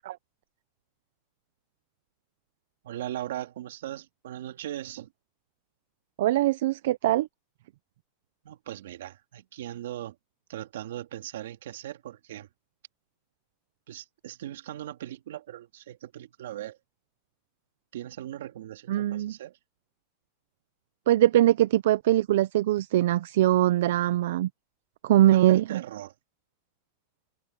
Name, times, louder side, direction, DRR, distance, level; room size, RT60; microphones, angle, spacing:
voice 1, 2.8-5.1 8.4-10.2 10.5-12.5 13.9-16.8 17.9-19.6 25.3-26.1, right 12 dB, 90° right, 2.9 m, -39 dB
voice 2, 6.2-7.3 18.9-19.3 21.1-24.5 25.0-25.8, right 13 dB, 65° right, 0.5 m, -22 dB
supercardioid pair, 175°, 0 cm